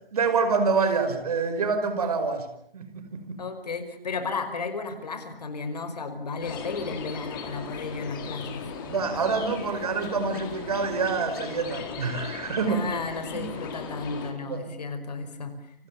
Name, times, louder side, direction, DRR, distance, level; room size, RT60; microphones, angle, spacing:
voice 1, 0.1-2.5 2.7-3.4 8.8-12.9 13.3-13.5 14.5-14.6, right 4 dB, 40° right, 9 dB, 5.4 m, -26 dB
voice 2, 3.4-8.6 12.7-15.5, left 4 dB, 45° left, 9 dB, 5.4 m, -33 dB
sound 1, 6.4-14.3, left 6 dB, 20° left, 3.8 m, -38 dB
30.0 x 26.5 x 7.2 m, 0.66 s
figure-of-eight pair, 155°, 29 cm